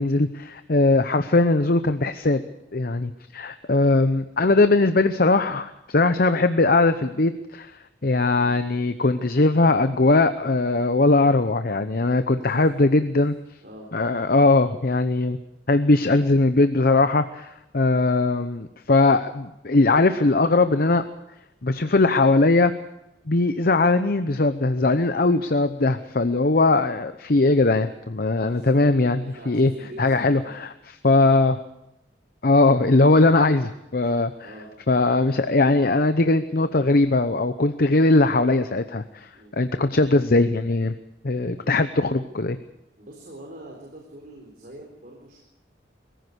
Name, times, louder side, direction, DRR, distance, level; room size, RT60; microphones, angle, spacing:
voice 1, 0.0-2.4 2.7-7.7 8.0-13.3 13.9-15.4 15.7-21.0 21.6-22.7 23.3-29.7 30.0-30.4 31.0-31.6 32.4-34.3 34.9-40.9 41.2-42.6, left 2 dB, 55° left, 10 dB, 0.9 m, -20 dB
voice 2, 12.4-12.7 13.6-13.9 28.3-28.7 29.2-30.5 34.4-34.7 39.3-39.6 43.0-45.4, right 1 dB, 55° right, 0 dB, 4.0 m, -43 dB
22.5 x 15.5 x 8.0 m, 0.87 s
head